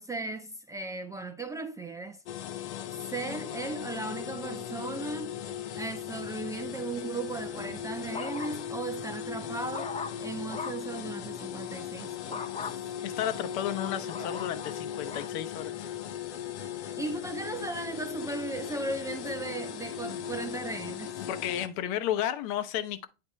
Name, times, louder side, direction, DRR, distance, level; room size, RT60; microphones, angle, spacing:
voice 1, 0.0-2.2 3.1-5.4 5.7-9.9 10.2-12.6 17.0-21.2, right 3 dB, 10° right, 0.3 m, -37 dB
sound 1, 2.3-21.7, left 9 dB, 90° left, 0.8 m, -38 dB
sound 2, 7.5-8.8 9.3-10.9 12.3-12.8 13.4-15.3 16.0-16.4, left 5 dB, 20° left, 0.7 m, -40 dB
voice 2, 13.0-16.0 20.1-20.4 21.2-23.1, left 11 dB, 55° left, 0.8 m, -33 dB
8.4 x 4.3 x 3.1 m
supercardioid pair, 115°, 33 cm